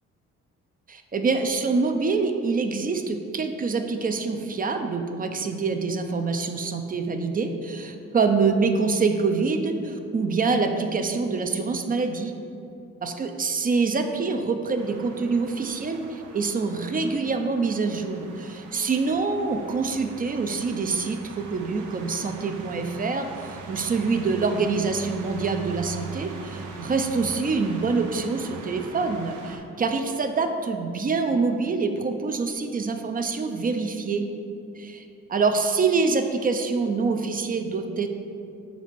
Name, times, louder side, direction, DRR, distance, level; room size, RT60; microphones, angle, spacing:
voice 1, 0.9-12.3 13.0-34.3 34.8-38.1, right 4 dB, 30° right, 6 dB, 0.4 m, -25 dB
sound 1, 14.7-29.6, right 3 dB, 90° right, 0.7 m, -41 dB
5.0 x 4.2 x 4.5 m, 2.6 s
cardioid pair, 90°, 30 cm